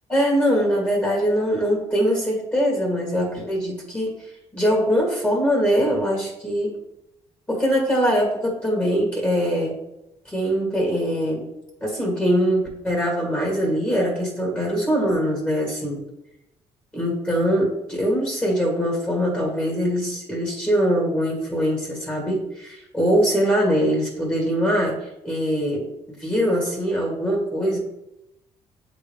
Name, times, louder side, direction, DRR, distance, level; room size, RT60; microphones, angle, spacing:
voice 1, 0.1-6.7 7.5-9.8 10.3-11.5 11.8-16.1 16.9-25.9 26.2-27.8, equal, 10° left, -3 dB, 2.0 m, -22 dB
7.8 x 3.9 x 3.4 m, 0.88 s
cardioid pair, 90°, 13 cm